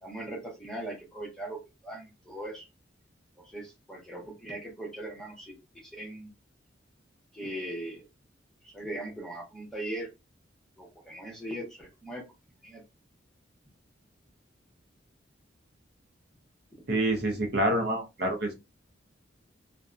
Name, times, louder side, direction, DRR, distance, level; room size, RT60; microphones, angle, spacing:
voice 1, 0.0-2.7 3.4-6.3 7.3-8.1 8.6-10.1 10.8-12.2 12.6-12.8, right 1 dB, 5° left, -2 dB, 0.8 m, -39 dB
voice 2, 16.9-18.5, right 1 dB, 55° right, 3 dB, 0.6 m, -27 dB
2.5 x 2.1 x 2.4 m, 0.24 s
head